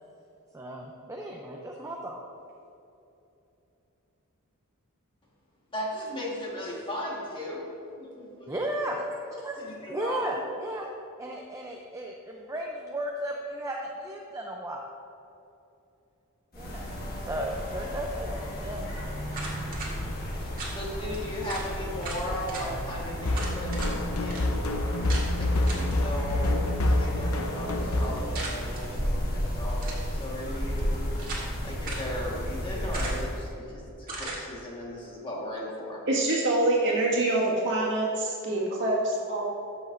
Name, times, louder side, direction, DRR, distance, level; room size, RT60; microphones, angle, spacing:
voice 1, 0.5-2.2 8.5-9.6 9.9-10.9 11.2-14.8 16.5-18.9, right 1 dB, 15° right, 0 dB, 0.5 m, -35 dB
voice 2, 5.7-7.7 8.0-8.5 9.6-10.4 20.4-24.6 25.4-31.0 31.3-36.0, equal, 25° left, -4 dB, 1.6 m, -37 dB
sound 1, 16.5-33.5, equal, 45° left, 1.5 m, -34 dB
sound 2, 19.3-19.9 20.6-20.8 21.1-21.2 21.5-21.7 22.0-22.6 23.3-23.9 24.3-24.4 25.1-25.3 25.7-25.9 28.3-28.8 29.7-30.1 30.8-31.5 31.8-32.1 32.9-33.3 34.1-34.4, right 2 dB, 40° right, 1.8 m, -37 dB
sound 3, 23.2-28.2, left 1 dB, 70° left, 0.8 m, -27 dB
voice 3, 36.1-39.5, right 2 dB, 55° right, -5 dB, 1.9 m, -25 dB
14.0 x 6.3 x 2.6 m, 2.9 s
head